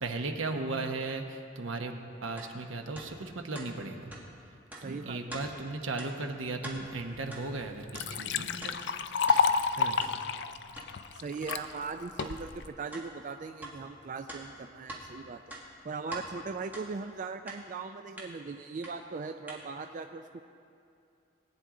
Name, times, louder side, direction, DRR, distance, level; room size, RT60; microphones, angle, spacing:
voice 1, 0.0-1.9 2.2-4.1 4.8-8.8 9.7-10.0, right 3 dB, 85° right, 4 dB, 1.1 m, -36 dB
sound 1, 2.4-2.5 3.0-3.1 3.5-3.7 4.1-4.2 4.7-4.9 5.3-5.5 6.0-6.1 6.5-6.8 7.3-7.5 7.9-8.1 8.6-8.8 9.3-9.4 10.0-10.1 10.8-10.9 11.5-11.6 12.2-12.3 12.9-13.1 13.6-13.7 14.3-15.0 15.4-16.3 16.7-16.9 17.5-17.6 18.2-18.3 18.8-18.9 19.5-19.6, right 1 dB, 10° right, 1.6 m, -43 dB
voice 2, 4.8-5.5 11.1-15.4 15.8-20.4, right 4 dB, 40° right, 7 dB, 0.4 m, -39 dB
Liquid, 7.1-7.2 7.6-11.6 12.2-12.7, left 5 dB, 60° left, 0.4 m, -29 dB
20.0 x 9.6 x 3.8 m, 2.5 s
head